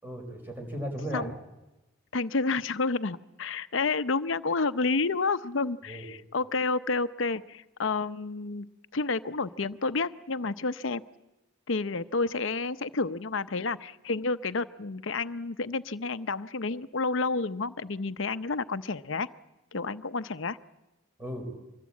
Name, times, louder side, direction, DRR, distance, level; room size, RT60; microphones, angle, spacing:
voice 1, 0.0-1.4 5.9-6.1 13.5-13.7 21.2-21.5, equal, 10° right, 3 dB, 4.7 m, -36 dB
voice 2, 2.1-8.7 8.9-11.0 11.7-19.3 19.7-20.6, left 3 dB, 65° left, 13 dB, 0.8 m, -30 dB
25.0 x 21.0 x 8.6 m, 1.0 s
head